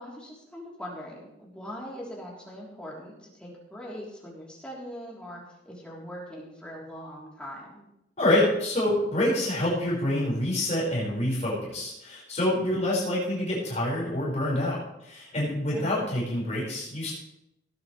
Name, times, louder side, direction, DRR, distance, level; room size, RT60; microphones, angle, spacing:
voice 1, 0.0-7.8 15.7-16.0, equal, 5° left, -5 dB, 3.4 m, -41 dB
voice 2, 8.2-17.1, left 1 dB, 40° left, -6 dB, 5.0 m, -27 dB
18.0 x 9.3 x 3.3 m, 0.86 s
head